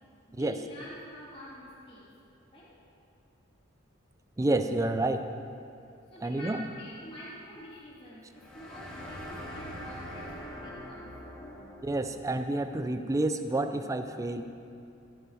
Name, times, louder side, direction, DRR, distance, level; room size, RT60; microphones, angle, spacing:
voice 1, 0.3-2.1 2.5-2.7 6.1-11.1, equal, 25° left, -9 dB, 2.7 m, -47 dB
voice 2, 4.4-5.3 6.2-6.6 11.8-14.4, right 2 dB, 15° right, 9 dB, 0.4 m, -29 dB
sound 1, 8.3-12.1, equal, 5° left, 1.6 m, -42 dB
15.0 x 6.9 x 4.8 m, 2.6 s
head